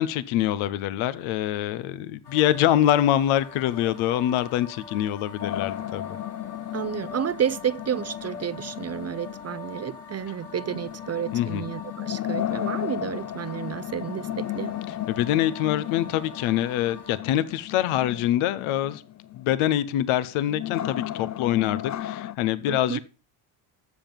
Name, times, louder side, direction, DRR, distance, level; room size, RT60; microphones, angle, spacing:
voice 1, 0.0-6.1 11.3-11.6 15.1-19.0 19.3-23.0, left 12 dB, 80° left, 1.0 m, -25 dB
sound 1, 2.2-17.2, left 4 dB, 55° left, 3.0 m, -44 dB
sound 2, 5.4-22.3, left 12 dB, 35° left, 0.5 m, -35 dB
voice 2, 6.7-14.7 22.7-23.0, right 9 dB, 30° right, 0.5 m, -31 dB
13.5 x 7.5 x 5.3 m
supercardioid pair, 70°, 49 cm